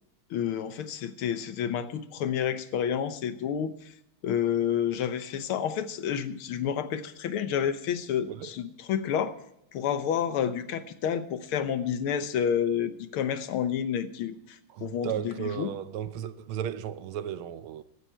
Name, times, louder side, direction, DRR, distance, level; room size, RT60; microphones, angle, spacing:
voice 1, 0.3-3.7 4.2-9.3 9.7-15.7, left 8 dB, 85° left, 1.9 m, -29 dB
voice 2, 14.7-17.8, right 9 dB, 80° right, 1.6 m, -35 dB
16.5 x 12.5 x 4.5 m
omnidirectional pair, 2.3 m